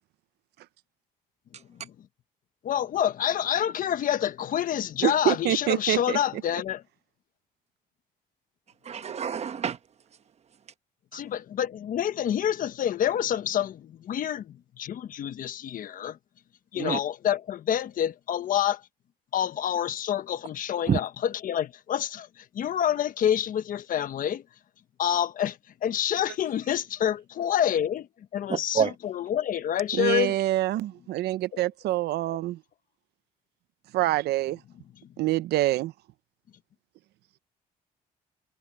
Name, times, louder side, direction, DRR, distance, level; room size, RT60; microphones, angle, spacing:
voice 1, 2.6-6.8 11.1-16.2 16.7-18.8 19.3-22.3 22.5-24.4 25.0-28.1 28.3-30.3 31.5-31.6, left 10 dB, 55° left, 1.3 m, -27 dB
voice 2, 5.0-6.4 29.9-32.6 33.9-34.6 35.2-35.9, right 15 dB, 75° right, 0.8 m, -26 dB
voice 3, 8.8-9.8 16.8-17.0 20.9-21.0 28.5-28.9, right 7 dB, 40° right, 1.2 m, -27 dB
cardioid pair, 110°, 17 cm